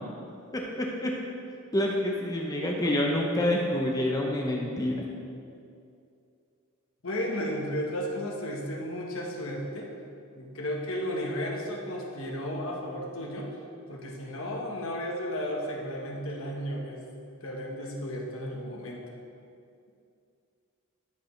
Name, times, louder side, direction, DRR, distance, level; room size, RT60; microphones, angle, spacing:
voice 1, 0.5-1.2 1.7-5.0, left 1 dB, 15° left, -1 dB, 0.6 m, -27 dB
voice 2, 7.0-9.9 10.3-13.5 13.9-17.0 17.4-19.0, equal, 65° left, -1 dB, 1.2 m, -34 dB
13.0 x 5.1 x 3.2 m, 2.5 s
head